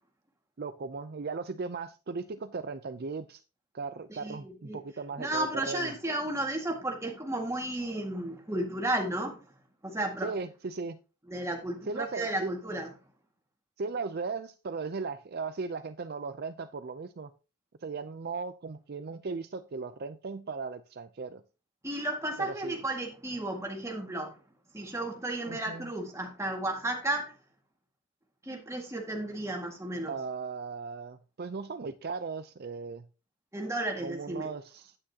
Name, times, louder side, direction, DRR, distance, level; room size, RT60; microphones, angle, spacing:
voice 1, 0.6-3.4 3.7-5.9 10.2-11.0 11.9-12.5 13.8-17.3 17.8-21.4 22.4-22.8 25.5-25.9 30.0-33.1 34.0-35.0, right 4 dB, 45° right, 0.5 m, -37 dB
voice 2, 4.1-4.8 5.2-9.4 9.8-10.3 11.3-12.9 21.8-24.4 24.7-27.3 28.4-30.1 33.5-34.5, right 1 dB, 15° right, 1.8 m, -33 dB
9.6 x 8.8 x 2.8 m
head